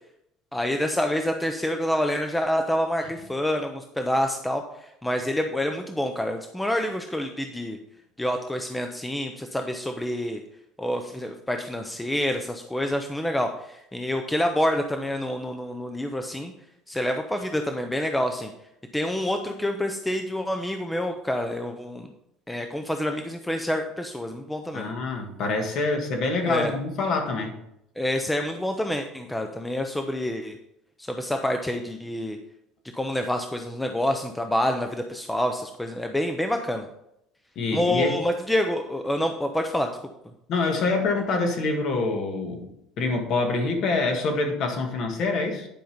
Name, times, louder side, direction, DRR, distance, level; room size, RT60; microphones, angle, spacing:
voice 1, 0.5-7.8 8.2-10.4 10.8-16.5 16.9-18.5 18.9-22.1 22.5-24.9 26.4-26.7 28.0-30.6 31.0-32.4 32.9-36.9 37.7-39.9, left 1 dB, 5° left, 5 dB, 0.5 m, -27 dB
voice 2, 24.7-27.6 37.6-38.2 40.5-42.7 43.0-45.7, left 3 dB, 40° left, 4 dB, 1.7 m, -26 dB
10.5 x 5.3 x 5.1 m, 0.80 s
cardioid pair, 175°, 0 cm